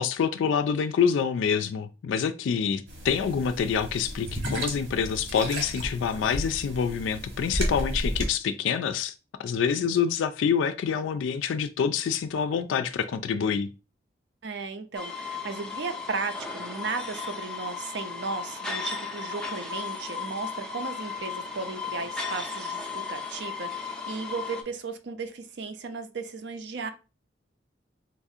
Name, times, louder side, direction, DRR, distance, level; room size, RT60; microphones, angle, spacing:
voice 1, 0.0-9.1 9.4-13.7, left 7 dB, 85° left, 0.3 m, -26 dB
sound 1, 2.9-8.3, equal, 80° right, 1.2 m, -33 dB
voice 2, 14.4-26.9, right 4 dB, 65° right, 0.5 m, -35 dB
sound 2, 14.9-24.6, left 5 dB, 5° left, 0.4 m, -35 dB
4.0 x 2.4 x 2.7 m
head